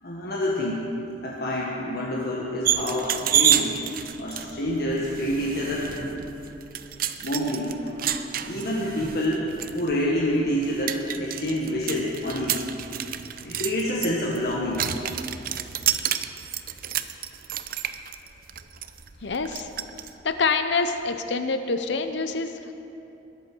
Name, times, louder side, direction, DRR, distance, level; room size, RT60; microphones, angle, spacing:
voice 1, 0.0-0.9 1.2-3.8 4.2-5.9 7.2-9.5 9.7-12.7 13.4-14.9, left 1 dB, 60° left, -4 dB, 1.6 m, -27 dB
sound 1, 2.6-20.1, right 10 dB, 55° right, 0.6 m, -30 dB
voice 2, 19.2-19.7 20.2-22.7, left 4 dB, 75° left, 8 dB, 0.7 m, -26 dB
21.5 x 7.9 x 6.2 m, 2.8 s
head